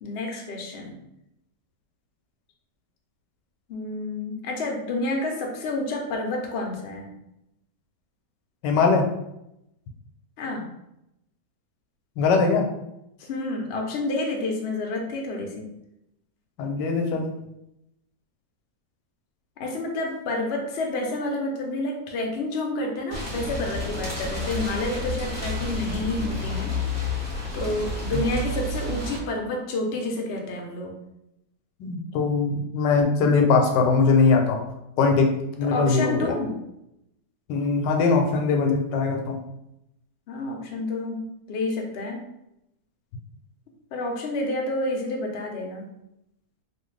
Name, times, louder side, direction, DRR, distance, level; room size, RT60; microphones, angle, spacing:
voice 1, 0.0-1.0 3.7-7.1 10.4-10.6 13.2-15.7 19.6-26.7 27.1-27.2 27.5-30.9 35.6-36.5 40.3-41.2 41.5-42.2 43.9-45.9, left 2 dB, 70° left, 1 dB, 0.6 m, -29 dB
voice 2, 8.6-9.1 12.2-12.7 16.6-17.3 31.8-34.6 35.0-35.3 35.6-36.3 37.5-39.4, left 4 dB, 85° left, 3 dB, 1.2 m, -21 dB
sound 1, 23.1-29.2, left 2 dB, 10° right, 0.8 m, -30 dB
3.0 x 2.4 x 3.1 m, 0.84 s
omnidirectional pair, 1.8 m